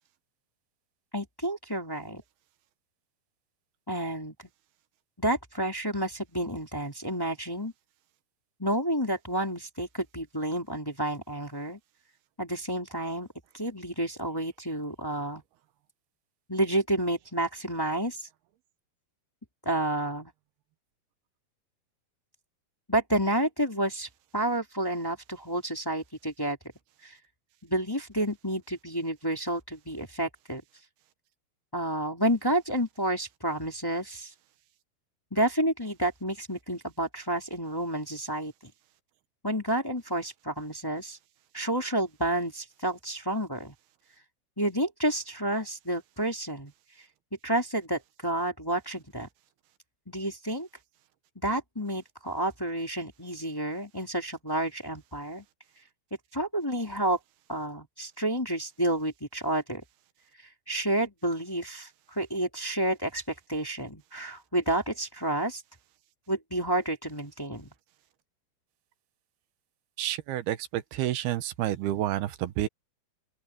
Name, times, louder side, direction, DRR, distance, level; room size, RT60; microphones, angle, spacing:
voice 1, 1.1-2.2 3.9-4.3 5.2-7.7 8.6-11.8 12.4-13.3 13.5-15.4 16.5-18.3 19.6-20.3 22.9-26.6 27.0-27.2 27.6-30.6 31.7-34.3 35.3-38.5 39.4-41.2 41.5-43.7 44.6-46.7 47.4-49.3 50.1-50.7 51.3-55.4 56.3-57.2 57.5-59.8 60.7-63.2 63.5-65.6 66.3-67.7, right 1 dB, 5° left, 2.7 m, -30 dB
voice 2, 70.0-72.7, right 13 dB, 80° right, 2.9 m, -29 dB
open air
omnidirectional pair, 4.6 m